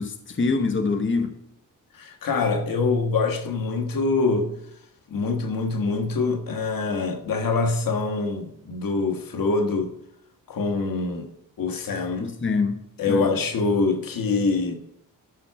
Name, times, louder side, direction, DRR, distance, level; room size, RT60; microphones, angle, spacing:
voice 1, 0.0-1.3 12.2-12.8 13.1-13.2, left 4 dB, 35° left, 1.1 m, -24 dB
voice 2, 1.9-4.5 5.1-9.9 10.5-11.3 11.6-12.3 13.0-14.7, left 3 dB, 80° left, 1.5 m, -24 dB
13.0 x 5.9 x 4.7 m
cardioid pair, 90°, 34 cm